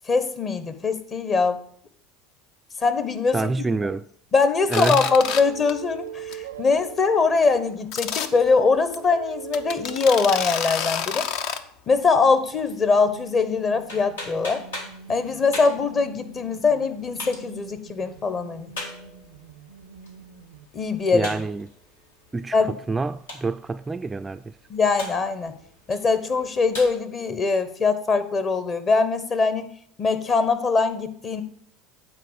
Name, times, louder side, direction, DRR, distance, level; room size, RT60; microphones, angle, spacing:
voice 1, 0.1-1.6 2.8-3.4 4.3-11.2 11.9-14.6 15.1-18.7 20.7-21.3 22.5-22.7 24.7-25.5 25.9-29.7 30.0-31.4, left 4 dB, 35° left, 1.0 m, -22 dB
voice 2, 3.3-4.1 4.7-5.1 21.1-21.7 22.3-24.5, right 3 dB, 20° right, 0.3 m, -27 dB
sound 1, 3.9-4.1 4.8-7.1 8.3-10.5 12.8-20.7, right 8 dB, 80° right, 0.5 m, -42 dB
sound 2, 4.7-5.4 5.7-5.9 6.3-6.4 6.7-6.8 7.9-8.3 8.9-9.0 9.5-11.6, left 7 dB, 60° left, 0.7 m, -28 dB
sound 3, 12.3-26.9, left 2 dB, 85° left, 1.7 m, -42 dB
8.9 x 4.3 x 6.3 m
hypercardioid pair, 75°, 0 cm